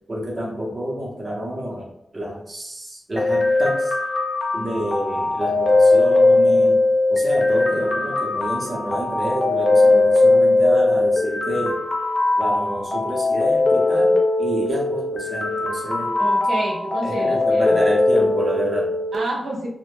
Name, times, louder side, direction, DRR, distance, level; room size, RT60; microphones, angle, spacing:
voice 1, 0.1-3.9 4.5-11.8 12.4-16.1 17.0-19.0, right 1 dB, 30° right, -3 dB, 0.7 m, -28 dB
sound 1, 3.2-19.1, left 2 dB, 30° left, 0.4 m, -19 dB
voice 2, 16.2-17.8 19.1-19.7, right 2 dB, 75° right, -1 dB, 0.5 m, -28 dB
2.1 x 2.0 x 3.0 m, 0.78 s
wide cardioid pair, 130°, 0 cm